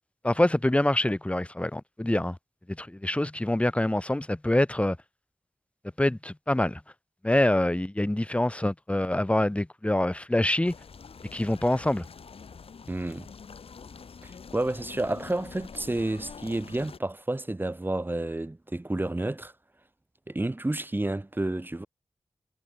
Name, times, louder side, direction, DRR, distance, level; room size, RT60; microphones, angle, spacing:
voice 1, 0.2-2.4 2.8-5.0 6.0-6.8 7.2-10.7 11.3-12.1, left 1 dB, 10° left, 1.9 m, -25 dB
sound 1, 10.6-17.0, left 5 dB, 85° left, 5.4 m, -46 dB
voice 2, 12.9-13.3 14.2-19.5 20.3-21.9, right 2 dB, 20° right, 2.8 m, -30 dB
wide cardioid pair, 90°, 10 cm